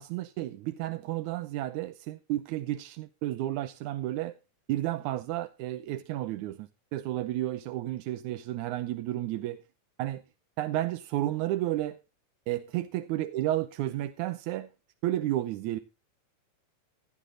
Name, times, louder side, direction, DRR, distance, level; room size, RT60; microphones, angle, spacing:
voice 1, 0.0-4.3 4.7-9.6 10.0-10.2 10.6-12.0 12.5-14.7 15.0-15.8, right 14 dB, 90° right, 2.2 m, -32 dB
17.0 x 9.3 x 3.8 m
omnidirectional pair, 3.3 m